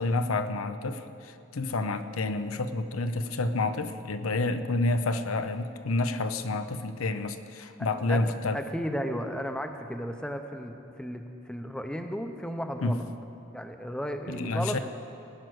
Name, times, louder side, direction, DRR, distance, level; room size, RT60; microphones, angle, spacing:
voice 1, 0.0-8.6 12.8-13.0 14.3-14.8, left 2 dB, 90° left, 9 dB, 0.7 m, -29 dB
voice 2, 8.5-13.0 13.5-14.8, equal, 5° left, 5 dB, 0.7 m, -34 dB
19.0 x 9.2 x 6.3 m, 2.7 s
head